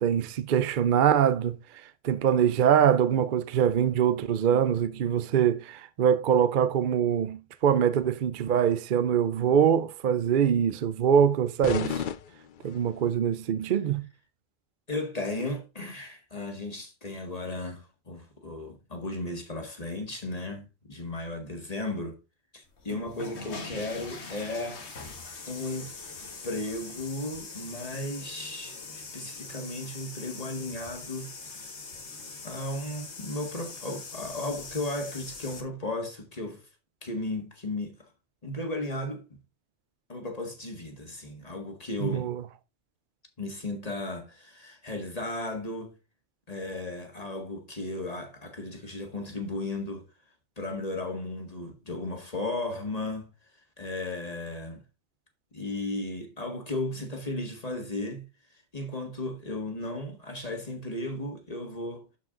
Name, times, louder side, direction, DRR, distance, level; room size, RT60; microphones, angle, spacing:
voice 1, 0.0-12.0 12.6-14.0 42.0-42.4, right 8 dB, 55° right, 0.7 m, -24 dB
sound 1, 11.6-13.1, left 8 dB, 55° left, 0.7 m, -34 dB
voice 2, 14.9-22.2 22.5-24.9 25.5-25.9 26.4-31.7 32.4-36.7 37.0-38.1 38.4-39.4 40.1-42.3 43.4-45.9 46.5-50.1 50.6-53.3 53.8-54.8 55.5-58.3 58.7-62.1, left 2 dB, 35° left, 1.8 m, -35 dB
sound 2, 22.7-35.6, left 4 dB, 85° left, 1.7 m, -42 dB
11.5 x 4.8 x 3.7 m
omnidirectional pair, 1.1 m